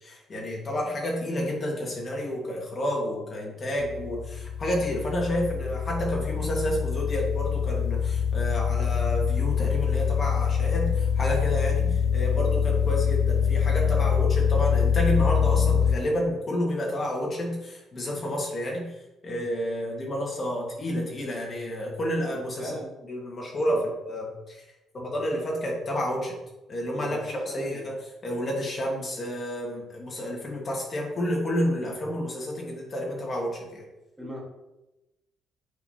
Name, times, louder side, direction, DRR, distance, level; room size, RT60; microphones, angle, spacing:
voice 1, 0.0-22.7 23.1-24.6 24.9-26.4 26.7-27.9 28.2-33.8, equal, 25° left, -2 dB, 1.6 m, -30 dB
sound 1, 3.8-16.0, left 7 dB, 75° left, 0.4 m, -25 dB
voice 2, 22.6-22.9 23.7-23.8 26.9-27.9 34.2-34.4, equal, 5° right, -4 dB, 1.6 m, -38 dB
8.2 x 5.3 x 2.8 m, 0.98 s
cardioid pair, 170°, 0 cm